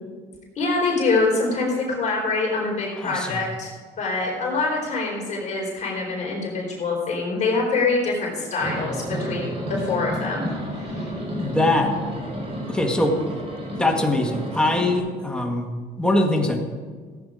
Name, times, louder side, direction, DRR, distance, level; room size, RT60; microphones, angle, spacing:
voice 1, 0.6-3.7 4.0-10.5 10.8-11.1, left 3 dB, 45° left, -3 dB, 4.0 m, -25 dB
voice 2, 3.0-3.4 11.4-11.9 12.7-13.2 13.7-15.7 16.0-16.6, left 1 dB, 5° left, 1 dB, 1.9 m, -22 dB
sound 1, 8.6-15.0, equal, 35° right, 4.2 m, -31 dB
15.5 x 8.7 x 5.0 m, 1.5 s
cardioid pair, 110°, 17 cm